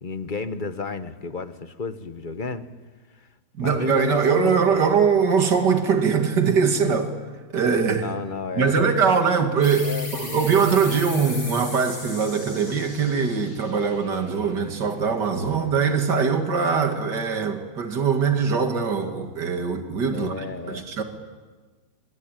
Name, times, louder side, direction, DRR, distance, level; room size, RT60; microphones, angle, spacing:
voice 1, 0.0-2.7 3.6-4.9 8.0-8.7 9.8-10.5 20.1-20.9, left 4 dB, 35° left, 1.1 m, -32 dB
voice 2, 3.6-7.1 7.5-8.1 8.6-20.3 20.7-21.0, right 5 dB, 80° right, 2.7 m, -22 dB
sound 1, 9.6-14.9, left 2 dB, 60° left, 6.0 m, -38 dB
27.0 x 23.5 x 9.0 m
omnidirectional pair, 1.8 m